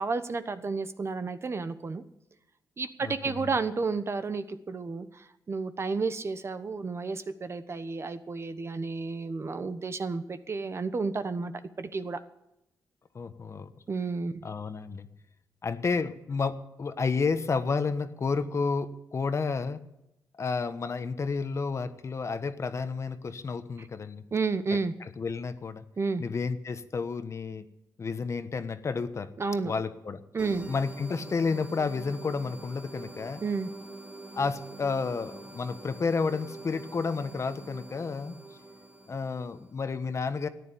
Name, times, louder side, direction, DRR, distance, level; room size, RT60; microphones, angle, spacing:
voice 1, 0.0-2.0 2.8-11.5 11.8-12.2 13.9-14.4 23.8-23.9 24.3-24.9 26.0-26.2 29.4-29.7 30.3-30.7 33.4-33.7, right 4 dB, 40° right, 11 dB, 1.1 m, -31 dB
voice 2, 3.0-3.5 13.1-13.7 14.4-15.1 15.6-19.8 20.4-24.2 24.7-24.8 25.2-25.8 26.2-27.6 28.0-29.3 29.6-30.2 30.7-33.4 34.3-38.3 39.1-40.5, left 4 dB, 45° left, 11 dB, 1.2 m, -31 dB
sound 1, 30.4-39.7, right 2 dB, 15° right, 1.8 m, -45 dB
14.0 x 9.9 x 8.4 m, 0.87 s
cardioid pair, 90°, 7 cm